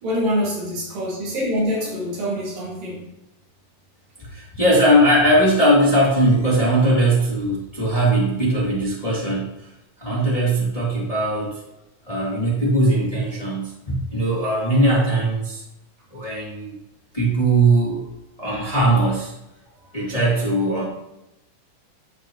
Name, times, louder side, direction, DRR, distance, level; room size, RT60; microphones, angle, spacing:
voice 1, 0.0-3.1, equal, 75° right, -5 dB, 4.0 m, -25 dB
voice 2, 4.3-9.5 10.0-11.5 12.1-15.6 16.1-16.8 17.1-18.1 18.4-19.3 19.9-20.8, right 1 dB, 10° left, -7 dB, 1.9 m, -19 dB
13.0 x 4.7 x 3.0 m, 0.89 s
omnidirectional pair, 3.9 m